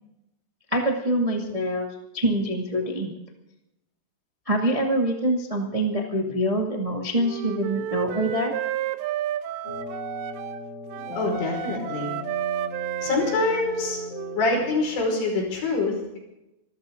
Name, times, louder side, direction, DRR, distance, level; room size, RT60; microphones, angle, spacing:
voice 1, 0.7-1.9 2.1-3.1 4.4-8.5, right 1 dB, 50° right, 1 dB, 0.4 m, -25 dB
Wind instrument woodwind instrument, 7.1-10.6 10.9-14.4, right 12 dB, 80° right, 3.1 m, -32 dB
sound 1, 9.6-14.8, left 4 dB, 30° left, 5.6 m, -37 dB
voice 2, 11.2-12.1 13.0-14.0 14.4-16.2, left 3 dB, 75° left, 1 dB, 7.5 m, -25 dB
26.0 x 14.0 x 3.9 m, 0.91 s
omnidirectional pair, 5.2 m